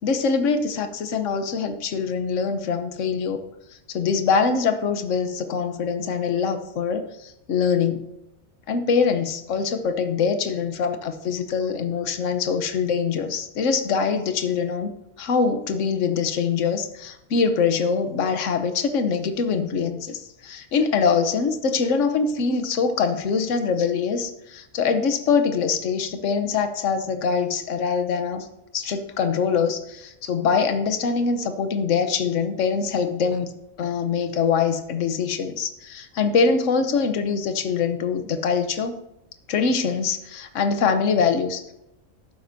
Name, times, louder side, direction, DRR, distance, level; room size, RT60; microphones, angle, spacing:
voice 1, 0.0-3.4 3.9-8.0 8.7-14.9 15.2-28.5 28.7-33.5 33.8-38.9 39.5-41.6, left 5 dB, 65° left, 8 dB, 1.2 m, -23 dB
12.0 x 9.4 x 2.7 m, 0.86 s
omnidirectional pair, 1.4 m